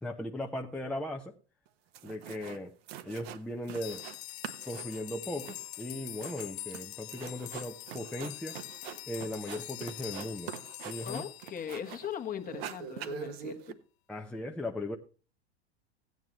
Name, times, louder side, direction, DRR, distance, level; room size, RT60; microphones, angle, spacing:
voice 1, 0.0-1.4 2.0-2.7 3.0-4.1 4.6-8.6 9.1-10.5 10.8-11.2 14.1-15.0, left 1 dB, 5° left, 0.7 m, -38 dB
sound 1, 1.7-1.8 1.9-2.6 2.9-4.2 4.4-12.1 12.4-13.7, right 8 dB, 60° right, 1.1 m, -44 dB
sound 2, 3.7-12.3, left 17 dB, 65° left, 0.5 m, -44 dB
voice 2, 11.0-13.8, left 9 dB, 25° left, 1.3 m, -39 dB
15.0 x 9.4 x 3.1 m
hypercardioid pair, 90°, 34 cm